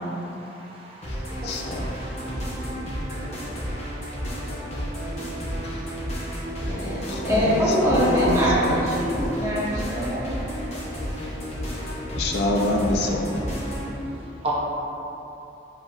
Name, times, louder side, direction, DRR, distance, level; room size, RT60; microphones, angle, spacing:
voice 1, 0.3-1.1 1.4-2.4 14.4-14.5, right 2 dB, 30° right, -5 dB, 0.5 m, -36 dB
sound 1, 1.0-13.9, equal, 35° left, 0.8 m, -31 dB
voice 2, 1.4-1.8 6.7-7.5 8.1-8.8 12.2-13.3, left 1 dB, 60° left, 1 dB, 0.4 m, -26 dB
voice 3, 6.7-10.4, equal, 15° right, -9 dB, 0.9 m, -23 dB
7.2 x 2.6 x 2.3 m, 3.0 s
head